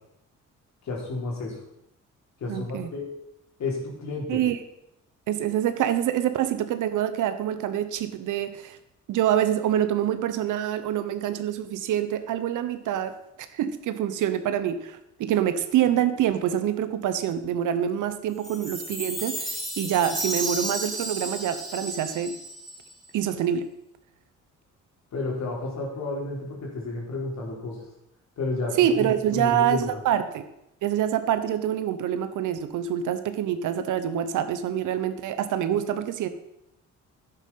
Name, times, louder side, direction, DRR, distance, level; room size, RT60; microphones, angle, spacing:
voice 1, 0.8-1.6 2.4-3.1 3.6-4.4 25.1-27.8 28.4-28.8 29.3-30.0, left 3 dB, 65° left, -1 dB, 4.2 m, -31 dB
voice 2, 2.5-2.9 4.3-4.6 5.3-8.8 9.1-13.2 13.5-19.5 19.8-22.4 23.1-23.7 28.8-30.4 30.8-36.3, right 10 dB, 80° right, 10 dB, 1.2 m, -26 dB
Chime, 18.4-22.9, right 1 dB, ahead, 3.4 m, -33 dB
11.0 x 8.2 x 5.8 m, 0.82 s
cardioid pair, 90°, 30 cm